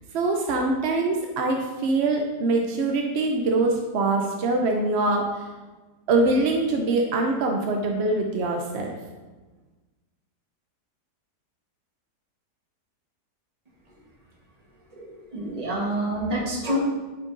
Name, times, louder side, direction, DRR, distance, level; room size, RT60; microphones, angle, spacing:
voice 1, 0.1-5.5 6.1-9.0, right 2 dB, 65° right, 2 dB, 0.6 m, -24 dB
voice 2, 14.9-16.8, right 1 dB, 25° right, -3 dB, 1.2 m, -28 dB
8.5 x 4.6 x 2.6 m, 1.2 s
omnidirectional pair, 1.8 m